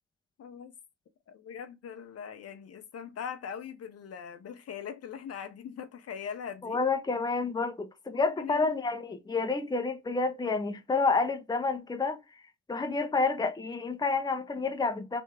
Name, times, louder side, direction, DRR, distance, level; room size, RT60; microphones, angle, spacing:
voice 1, 0.4-0.7 1.3-6.8 8.1-8.6, left 7 dB, 55° left, 0.8 m, -41 dB
voice 2, 6.6-12.2 12.7-15.2, left 4 dB, 15° left, 0.7 m, -29 dB
3.4 x 3.1 x 3.3 m
supercardioid pair, 60°, 30 cm